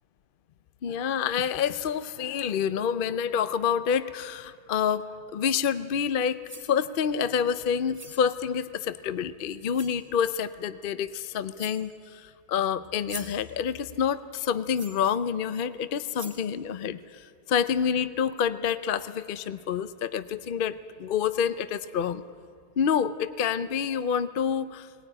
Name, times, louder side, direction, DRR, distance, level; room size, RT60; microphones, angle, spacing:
voice 1, 0.8-6.4 6.7-22.2 22.8-24.9, left 7 dB, 60° left, 14 dB, 0.5 m, -28 dB
sound 1, 6.3-6.8 7.9-8.3 9.2-9.3 9.7-10.0 11.1-11.2 11.5-11.9 12.8-13.5 14.7-15.1 15.7-15.8 16.2-16.5, equal, 5° right, 2.1 m, -44 dB
19.5 x 19.0 x 9.9 m, 2.3 s
omnidirectional pair, 1.6 m